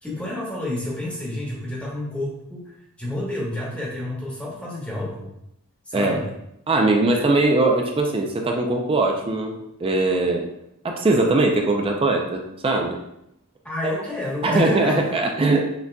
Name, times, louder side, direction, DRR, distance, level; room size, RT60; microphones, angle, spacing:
voice 1, 0.0-5.3 5.9-6.3 13.6-15.3, left 1 dB, 5° left, -5 dB, 1.0 m, -29 dB
voice 2, 5.9-6.2 6.7-10.4 10.8-13.0 14.4-15.6, right 2 dB, 25° right, 2 dB, 0.4 m, -21 dB
5.9 x 2.7 x 2.2 m, 0.81 s
head